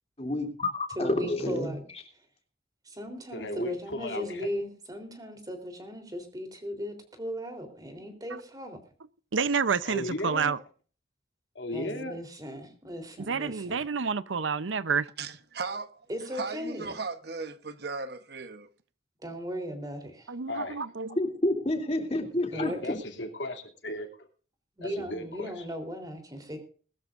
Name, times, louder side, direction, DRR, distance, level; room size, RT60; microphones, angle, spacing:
voice 1, 0.2-1.7 21.2-23.0, left 1 dB, 35° left, 2.9 m, -29 dB
voice 2, 1.0-1.9 2.9-8.8 11.7-13.9 16.1-17.0 19.2-20.3 22.5-22.9 24.8-26.6, equal, 20° right, 3.6 m, -37 dB
voice 3, 3.3-4.5 9.8-10.5 11.5-12.2 20.5-20.8 22.5-24.1 24.8-25.6, left 1 dB, 70° left, 2.7 m, -36 dB
voice 4, 9.3-10.6 13.3-15.1 20.3-21.1, right 5 dB, 90° right, 0.7 m, -28 dB
voice 5, 15.2-15.9 16.3-18.7, right 4 dB, 55° right, 1.0 m, -36 dB
21.0 x 13.5 x 2.6 m
head